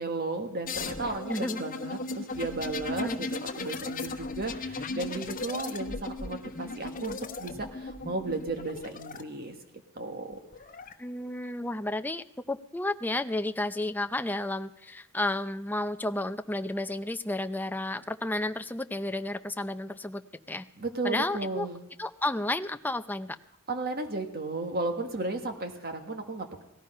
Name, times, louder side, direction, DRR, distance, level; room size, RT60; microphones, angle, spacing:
voice 1, 0.0-9.5 9.9-10.4 20.8-21.8 23.7-26.6, right 2 dB, 45° right, 6 dB, 1.5 m, -34 dB
sound 1, 0.6-9.2 10.3-10.9, left 3 dB, 40° left, 1.1 m, -37 dB
voice 2, 1.3-1.6 3.0-3.2 11.0-20.2 20.5-20.7 21.0-21.7 22.0-23.4, left 1 dB, 10° left, 8 dB, 0.5 m, -32 dB
18.0 x 14.0 x 5.5 m, 0.86 s
head